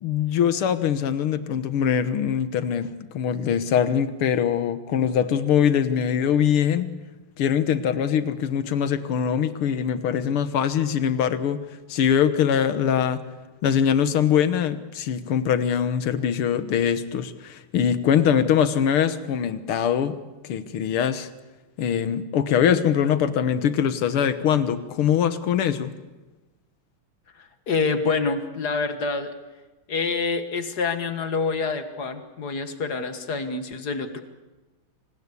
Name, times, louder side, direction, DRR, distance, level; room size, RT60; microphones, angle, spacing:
voice 1, 0.0-2.9 3.1-6.9 7.4-11.6 11.9-13.2 13.6-20.2 20.4-21.3 21.8-25.9, left 8 dB, 80° left, 12 dB, 2.1 m, -22 dB
voice 2, 27.4-29.3 29.9-34.2, left 4 dB, 50° left, 9 dB, 1.9 m, -27 dB
26.0 x 19.5 x 8.4 m, 1.2 s
omnidirectional pair, 2.4 m